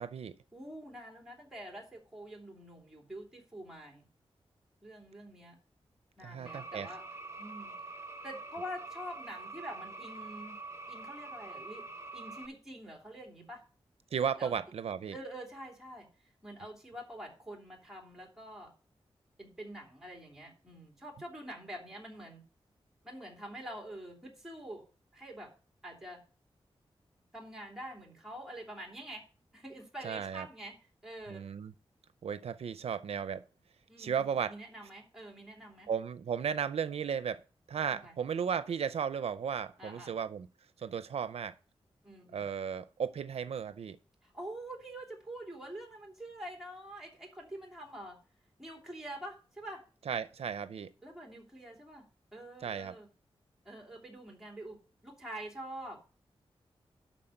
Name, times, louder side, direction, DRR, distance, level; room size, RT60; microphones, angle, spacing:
voice 1, 0.0-0.4 6.2-6.9 14.1-15.1 30.0-30.5 31.3-31.7 32.2-33.4 34.0-34.5 35.9-37.4 37.7-40.5 40.8-41.5 42.3-44.0 50.1-50.9 52.6-52.9, right 7 dB, 85° right, 0.5 m, -35 dB
voice 2, 0.5-4.1 4.8-5.6 6.2-7.0 7.4-7.8 8.2-10.6 10.9-11.8 12.1-13.6 14.4-14.6 15.1-16.1 16.4-18.7 19.4-22.4 23.0-24.8 25.1-25.5 25.8-26.2 27.3-29.2 29.5-30.8 31.0-31.5 33.9-35.9 37.9-38.1 39.8-40.1 42.0-42.5 44.2-48.2 48.6-49.8 51.0-52.0 52.3-53.1 53.6-56.1, right 1 dB, 5° right, 3.0 m, -46 dB
sound 1, 6.5-12.5, right 3 dB, 25° right, 0.9 m, -45 dB
11.5 x 4.3 x 6.5 m
wide cardioid pair, 140°, 10 cm